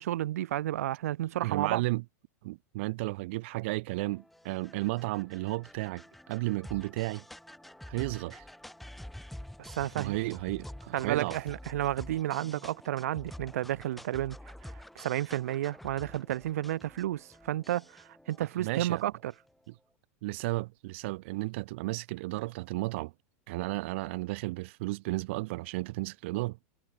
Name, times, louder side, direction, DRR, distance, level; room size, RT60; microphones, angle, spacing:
voice 1, 0.0-1.8 9.6-10.2 10.9-14.4 14.6-19.3, right 13 dB, 80° right, 1.2 m, -32 dB
voice 2, 1.4-2.0 2.4-7.2 7.9-8.5 10.0-11.4 18.6-19.0 20.2-23.1 23.5-26.6, right 21 dB, 50° right, 1.1 m, -33 dB
sound 1, 4.0-19.5, left 1 dB, ahead, 6.8 m, -48 dB
supercardioid pair, 165°, 8 cm